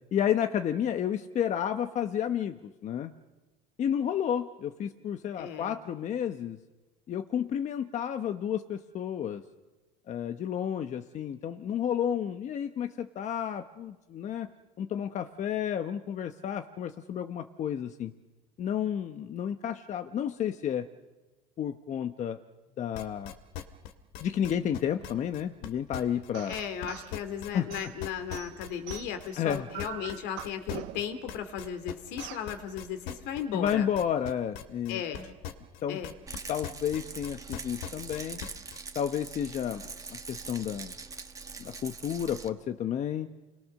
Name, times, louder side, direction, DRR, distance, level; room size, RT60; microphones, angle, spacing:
voice 1, 0.1-3.1 3.8-6.6 7.1-9.4 10.1-14.5 14.8-18.1 18.6-20.9 21.6-22.4 22.8-23.3 24.2-26.6 27.5-27.7 29.4-29.7 33.5-35.0 35.8-36.0 36.5-38.4 38.9-40.9 41.6-43.3, left 9 dB, 40° left, 8 dB, 1.0 m, -31 dB
voice 2, 5.4-5.7 26.5-33.9 34.9-35.2 35.9-36.1, left 8 dB, 70° left, 9 dB, 2.6 m, -36 dB
sound 1, 22.9-26.9 27.1-36.4 36.6-38.8, left 10 dB, 85° left, 2.2 m, -40 dB
sound 2, 26.3-27.1 27.7-29.3 29.7-31.2 32.2-32.5, right 14 dB, 80° right, 1.3 m, -43 dB
Rattle, 36.3-42.5, right 4 dB, 20° right, 1.5 m, -43 dB
29.0 x 21.5 x 6.6 m, 1.2 s
cardioid pair, 120°, 18 cm